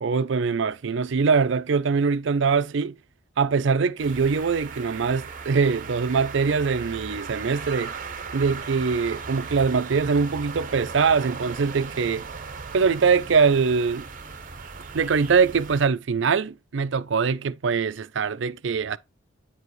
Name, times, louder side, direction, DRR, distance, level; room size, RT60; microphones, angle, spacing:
voice 1, 0.0-3.0 3.4-7.9 8.3-12.3 12.7-14.0 14.9-19.0, right 5 dB, 65° right, 0.5 m, -23 dB
sound 1, 4.0-15.9, right 5 dB, 45° right, 0.9 m, -37 dB
9.1 x 4.7 x 3.1 m
head